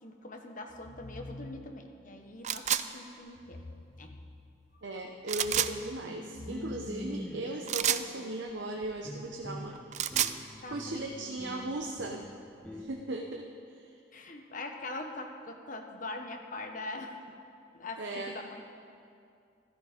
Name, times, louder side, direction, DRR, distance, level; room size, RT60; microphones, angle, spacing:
voice 1, 0.0-3.6 4.0-4.1 10.6-11.3 14.1-17.4 17.7-18.6, left 2 dB, 45° left, 4 dB, 1.1 m, -42 dB
sound 1, 0.7-2.0 3.4-4.8 5.3-7.8, left 2 dB, 65° left, 0.9 m, -49 dB
sound 2, 2.4-2.8 5.3-5.7 7.7-8.1 9.8-10.4, right 10 dB, 35° right, 0.4 m, -28 dB
voice 2, 4.8-9.7 10.7-12.2 12.7-13.4 13.8-14.0 18.0-18.3, right 2 dB, 70° right, 2 dB, 0.8 m, -37 dB
sound 3, 6.0-12.8, left 1 dB, 10° left, 1.0 m, -45 dB
14.0 x 13.0 x 5.1 m, 2.4 s
head